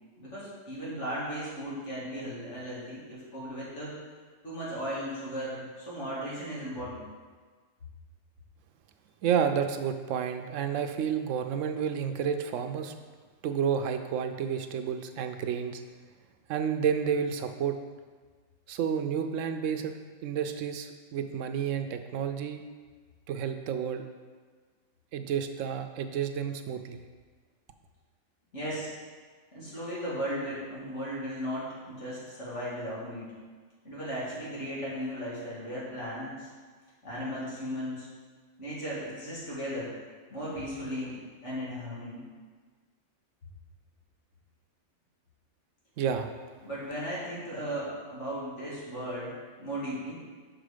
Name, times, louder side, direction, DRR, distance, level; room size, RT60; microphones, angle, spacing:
voice 1, 0.2-3.9 4.4-7.0 28.5-28.9 29.5-33.3 33.8-36.5 37.0-38.1 38.6-39.9 40.3-41.2 41.4-42.3 46.6-50.2, equal, 70° left, -8 dB, 2.6 m, -36 dB
voice 2, 9.2-12.9 13.4-15.8 16.5-17.8 18.7-20.0 20.2-22.6 23.3-24.1 25.1-27.0 46.0-46.3, right 7 dB, 90° right, 7 dB, 0.9 m, -30 dB
6.1 x 5.0 x 5.0 m, 1.5 s
omnidirectional pair, 1.3 m